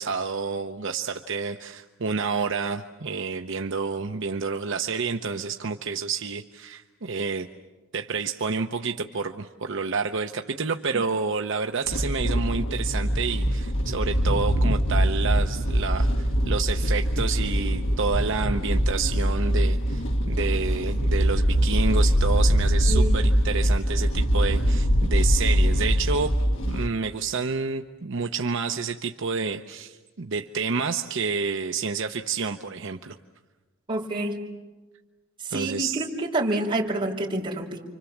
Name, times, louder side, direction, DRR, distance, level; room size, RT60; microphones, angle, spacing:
voice 1, 0.0-7.5 7.9-26.3 26.7-33.2 35.5-36.0, right 5 dB, 65° right, 5 dB, 0.9 m, -29 dB
sound 1, 11.9-26.9, equal, 65° left, 1.8 m, -23 dB
voice 2, 33.9-34.4 35.4-37.8, right 1 dB, 25° right, -4 dB, 4.9 m, -28 dB
30.0 x 25.5 x 7.3 m, 1.2 s
head